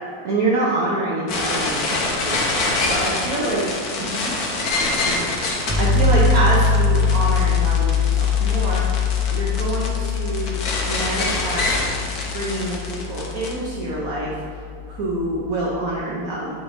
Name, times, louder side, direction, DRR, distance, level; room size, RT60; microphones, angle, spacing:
voice 1, 0.2-3.6 4.9-5.3 5.6-10.6 10.9-11.7 12.3-14.6 14.9-16.6, right 2 dB, 55° right, -5 dB, 1.2 m, -26 dB
sound 1, 1.3-13.5, left 2 dB, 60° left, 1.3 m, -25 dB
sound 2, 5.7-15.6, left 5 dB, 15° left, 0.8 m, -22 dB
8.8 x 3.8 x 4.0 m, 2.4 s
omnidirectional pair, 2.0 m